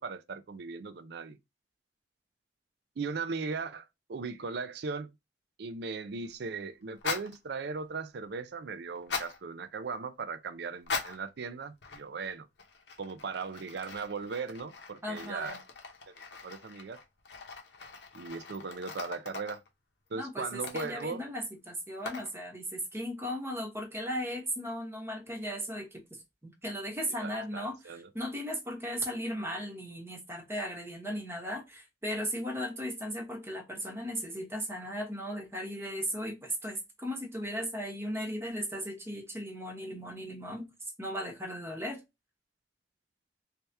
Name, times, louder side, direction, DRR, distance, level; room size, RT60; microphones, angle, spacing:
voice 1, 0.0-1.4 3.0-5.1 5.6-12.5 13.0-15.6 16.1-16.2 16.4-17.0 18.1-19.6 20.1-21.2 27.2-28.1, right 4 dB, 65° right, 0.5 m, -38 dB
sound 1, 6.9-7.4 8.9-9.4 10.8-11.3 11.8-12.3 12.6-19.7 20.5-21.2 22.0-22.3, left 4 dB, 70° left, 0.8 m, -40 dB
voice 2, 15.0-15.6 20.1-26.2 26.6-40.7 41.0-42.0, equal, 15° right, 1.0 m, -36 dB
3.4 x 2.8 x 3.3 m
head